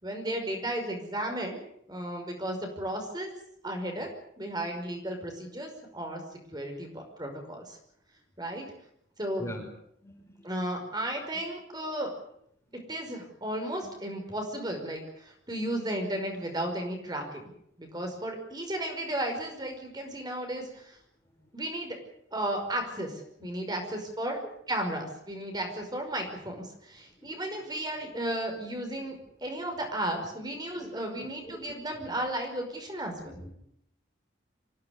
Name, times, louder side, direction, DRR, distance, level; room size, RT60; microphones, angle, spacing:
voice 1, 0.0-1.6 1.9-3.3 3.6-4.1 4.4-6.2 6.5-7.8 8.4-8.7 9.2-9.5 10.4-12.1 12.9-17.5 17.8-21.0 21.5-22.0 22.3-24.4 24.7-33.4, right 1 dB, 20° right, 3 dB, 5.4 m, -34 dB
voice 2, 10.0-10.5 13.8-13.9 21.4-21.5 23.9-24.0 27.2-27.8 30.8-30.9 31.2-31.8 32.1-32.2 33.3-33.5, equal, 15° left, 3 dB, 5.1 m, -44 dB
25.5 x 16.5 x 9.7 m, 0.72 s
head